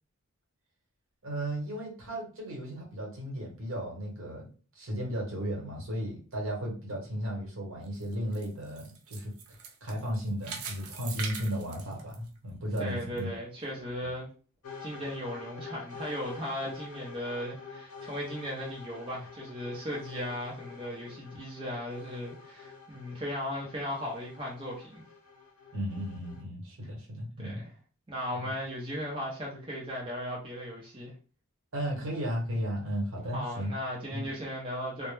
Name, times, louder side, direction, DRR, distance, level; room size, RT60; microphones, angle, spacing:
voice 1, 1.2-4.5 4.7-9.3 9.8-13.3 14.0-14.1 25.7-27.6 31.7-33.7 34.1-34.3, equal, 60° right, -1 dB, 0.9 m, -35 dB
sound 1, 7.8-12.8 13.2-13.3 13.9-14.0, right 5 dB, 90° right, 0.5 m, -42 dB
voice 2, 12.8-14.3 14.8-25.0 27.4-27.7 28.1-31.1 33.3-35.1, equal, 25° right, -5 dB, 0.6 m, -37 dB
sound 2, 14.6-26.4, left 5 dB, 70° left, 0.7 m, -47 dB
2.0 x 2.0 x 3.1 m, 0.39 s
head